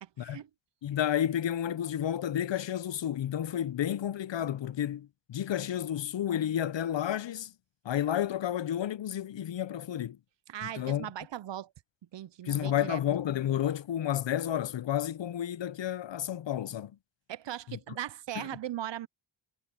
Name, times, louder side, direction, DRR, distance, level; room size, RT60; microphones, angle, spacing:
voice 1, 0.2-0.5 10.5-11.7 12.1-13.0 17.3-19.1, right 12 dB, 65° right, 0.5 m, -38 dB
voice 2, 0.8-7.5 7.8-10.2 10.6-11.1 12.4-16.9 17.7-17.8 18.4-18.5, left 10 dB, 65° left, 0.6 m, -31 dB
wide cardioid pair, 100°, 47 cm